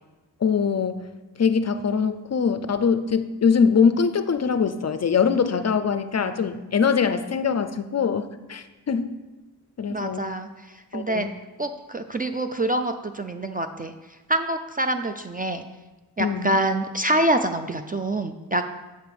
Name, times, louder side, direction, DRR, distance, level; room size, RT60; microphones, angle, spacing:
voice 1, 0.4-1.1 1.4-9.1 9.8-10.3 10.9-11.3 16.2-16.6, left 6 dB, 40° left, 10 dB, 0.4 m, -23 dB
voice 2, 9.9-11.3 11.6-13.9 14.3-15.6 16.2-18.7, right 1 dB, 25° right, 7 dB, 0.3 m, -26 dB
7.6 x 5.1 x 4.8 m, 1.1 s
wide cardioid pair, 90°, 41 cm